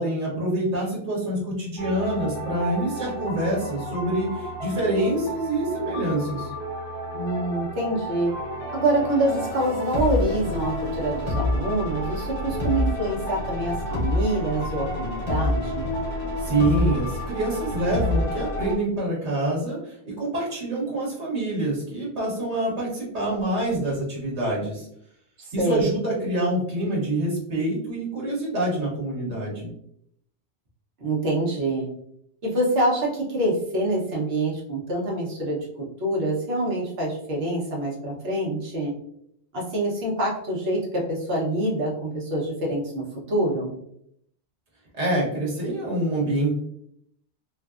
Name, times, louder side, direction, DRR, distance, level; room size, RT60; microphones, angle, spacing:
voice 1, 0.0-6.5 16.4-24.9 25.5-29.7 44.9-46.5, right 1 dB, 85° right, -4 dB, 1.3 m, -26 dB
sound 1, 1.8-18.7, left 1 dB, 60° left, 1.7 m, -29 dB
voice 2, 7.1-8.3 8.7-15.9 25.4-25.8 31.0-31.9 32.4-35.6 36.0-38.9 39.5-43.7, right 1 dB, 65° right, -3 dB, 1.2 m, -26 dB
3.5 x 2.5 x 2.3 m, 0.72 s
omnidirectional pair, 1.1 m